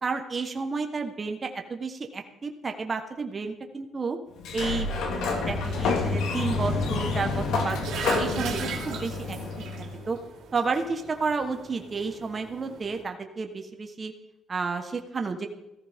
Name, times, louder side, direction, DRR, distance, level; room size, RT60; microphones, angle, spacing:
voice 1, 0.0-4.2 4.5-7.8 8.2-9.4 10.1-10.2 10.5-14.1 14.5-15.5, right 4 dB, 35° right, 5 dB, 1.3 m, -31 dB
Sliding door, 4.4-10.0, left 4 dB, 85° left, 2.1 m, -28 dB
sound 1, 7.4-13.0, right 5 dB, 85° right, 2.6 m, -38 dB
15.0 x 14.0 x 3.7 m, 0.98 s
cardioid pair, 90°, 0 cm